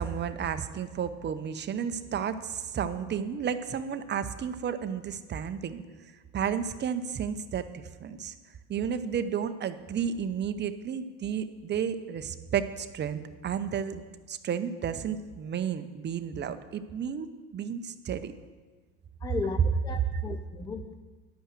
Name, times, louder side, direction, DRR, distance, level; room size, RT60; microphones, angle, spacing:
voice 1, 0.0-5.8 6.3-8.3 8.7-14.0 14.3-18.3 20.1-20.2, right 7 dB, 25° right, 10 dB, 0.7 m, -32 dB
voice 2, 19.2-20.9, left 4 dB, 10° left, 6 dB, 0.3 m, -36 dB
10.0 x 5.5 x 7.6 m, 1.4 s
hypercardioid pair, 80°, 41 cm